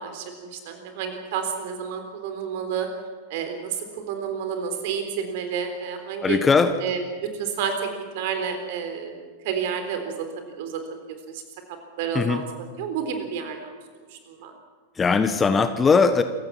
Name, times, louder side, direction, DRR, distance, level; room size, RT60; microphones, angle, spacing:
voice 1, 0.0-2.9 3.3-6.4 6.8-7.7 8.1-10.2 10.5-10.8 11.1-11.4 12.0-12.4 12.8-13.8 14.1-14.5, right 7 dB, 50° right, 6 dB, 3.8 m, -30 dB
voice 2, 6.2-6.8 12.1-12.4 14.9-16.2, left 5 dB, 15° left, 10 dB, 1.1 m, -19 dB
28.0 x 16.0 x 6.0 m, 1.5 s
figure-of-eight pair, 90°, 0 cm